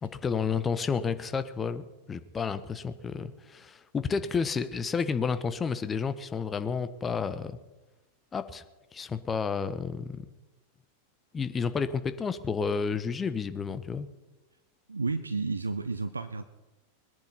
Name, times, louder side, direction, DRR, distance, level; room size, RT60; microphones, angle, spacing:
voice 1, 0.0-7.6 8.3-8.6 8.9-10.2 11.3-14.1, left 5 dB, 20° left, 12 dB, 1.1 m, -31 dB
voice 2, 14.9-16.4, right 3 dB, 80° right, 9 dB, 0.7 m, -31 dB
21.0 x 10.5 x 5.7 m, 1.1 s
figure-of-eight pair, 90°, 0 cm